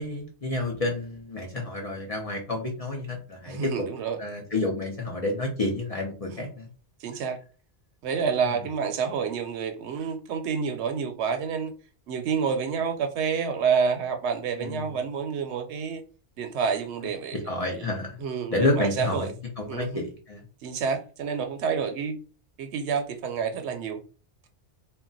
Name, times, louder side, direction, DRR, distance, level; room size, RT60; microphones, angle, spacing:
voice 1, 0.0-3.7 4.2-6.7 14.6-14.9 17.3-18.2 18.5-19.3 19.6-20.4, left 2 dB, 45° left, 0.5 m, -29 dB
voice 2, 3.5-4.2 7.0-7.4 8.0-11.7 12.1-16.0 16.4-17.4 17.7-17.9 18.2-19.3 19.7-20.0 20.6-22.2 22.6-24.0, right 6 dB, 75° right, 0.8 m, -28 dB
2.3 x 2.1 x 3.8 m
omnidirectional pair, 1.2 m